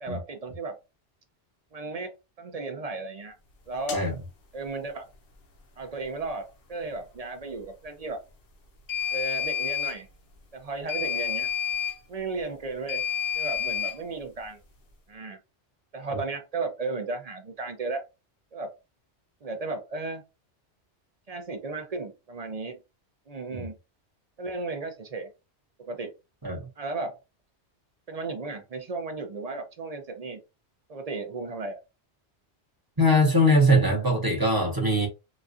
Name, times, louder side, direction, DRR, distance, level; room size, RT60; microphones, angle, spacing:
voice 1, 0.0-0.8 1.7-3.4 3.7-4.0 4.5-5.0 5.8-8.2 9.1-10.1 10.5-11.5 12.1-13.0 13.3-14.6 15.1-15.4 15.9-18.0 18.5-18.8 19.4-20.2 21.3-22.8 23.3-23.8 24.4-25.3 25.8-26.1 26.8-27.2 28.1-30.4 30.9-31.8, right 3 dB, 45° right, 0.5 m, -34 dB
sound 1, 3.9-4.0 8.9-10.0 10.9-12.0 12.9-14.0, left 8 dB, 55° left, 0.9 m, -29 dB
voice 2, 33.0-35.1, equal, 20° right, 0.8 m, -21 dB
4.1 x 2.4 x 2.5 m
omnidirectional pair, 1.2 m